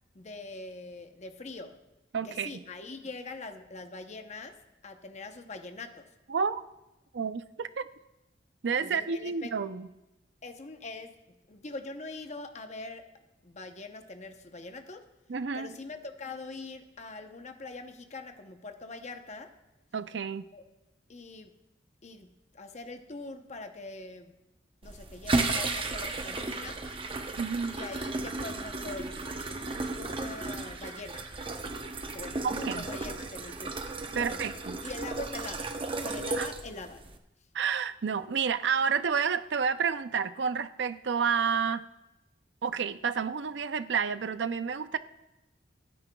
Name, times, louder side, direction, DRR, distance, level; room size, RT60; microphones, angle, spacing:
voice 1, 0.1-1.8 2.2-6.1 8.8-9.5 10.4-11.2 11.5-13.1 13.4-15.1 15.5-19.6 20.5-20.6 21.1-21.5 22.0-22.3 22.5-24.3 24.8-26.8 27.7-29.2 30.0-31.3 32.1-33.8 34.1-34.5 34.8-35.7 36.0-37.0, left 3 dB, 40° left, 6 dB, 0.8 m, -43 dB
voice 2, 2.1-2.6 6.3-6.6 7.1-7.9 8.6-9.9 15.3-15.7 19.9-20.4 27.4-27.8 32.4-32.9 34.1-34.8 36.4-36.5 37.5-41.8 42.6-45.0, right 6 dB, 65° right, 12 dB, 0.5 m, -30 dB
sound 1, 24.8-37.2, right 3 dB, 30° right, 0.8 m, -34 dB
28.5 x 9.7 x 2.3 m, 0.97 s
head